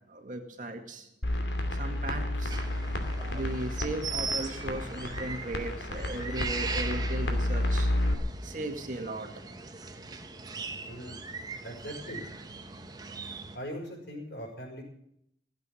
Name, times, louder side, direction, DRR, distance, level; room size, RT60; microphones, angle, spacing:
voice 1, 0.1-1.1 1.7-2.6 3.3-7.9 8.4-9.3, right 1 dB, 45° right, 4 dB, 2.0 m, -37 dB
sound 1, 1.2-8.1, left 1 dB, 80° left, 2.5 m, -31 dB
sound 2, 2.5-13.6, right 4 dB, 20° right, 1.1 m, -39 dB
voice 2, 10.9-11.2 11.6-12.3 13.5-14.8, equal, 60° left, 0 dB, 5.8 m, -40 dB
16.5 x 8.2 x 9.8 m, 0.74 s
head